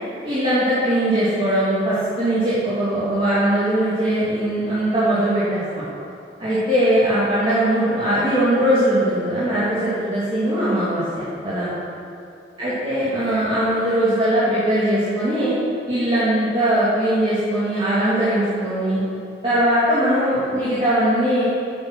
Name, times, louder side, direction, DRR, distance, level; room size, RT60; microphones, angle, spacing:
voice 1, 0.2-5.8 6.4-11.7 12.6-15.5 15.9-19.0 19.4-21.4, right 1 dB, 30° right, -12 dB, 2.6 m, -20 dB
8.8 x 8.8 x 6.1 m, 2.6 s
head